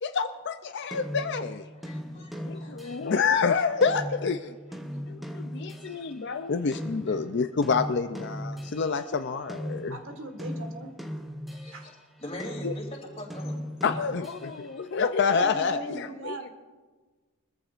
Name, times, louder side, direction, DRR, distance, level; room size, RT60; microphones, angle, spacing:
voice 1, 0.0-1.7 2.5-4.6 5.1-10.0 12.6-12.7 13.8-16.5, left 5 dB, 50° left, 9 dB, 0.4 m, -28 dB
sound 1, 0.9-6.2 6.7-12.0 12.4-14.8, equal, ahead, 0.7 m, -38 dB
voice 2, 1.7-3.0 4.7-5.0 5.5-5.9 7.0-7.2 11.5-11.9 12.2-13.6, left 1 dB, 25° left, 0 dB, 2.9 m, -43 dB
voice 3, 9.9-10.9 11.7-11.9 15.2-16.5, right 2 dB, 60° right, 4 dB, 1.6 m, -39 dB
22.5 x 14.5 x 2.5 m, 1.4 s
head